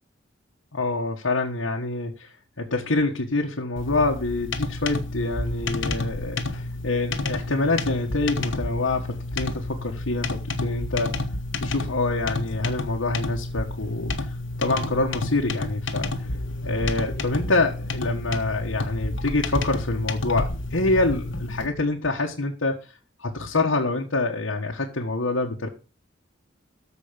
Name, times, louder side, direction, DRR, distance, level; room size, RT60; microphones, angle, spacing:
voice 1, 0.7-11.2 11.6-14.3 14.6-16.3 16.6-22.8 23.2-25.7, left 2 dB, 90° left, -1 dB, 1.5 m, -26 dB
sound 1, 3.8-21.7, left 2 dB, 70° left, 1.4 m, -30 dB
14.0 x 5.4 x 5.1 m, 0.34 s
head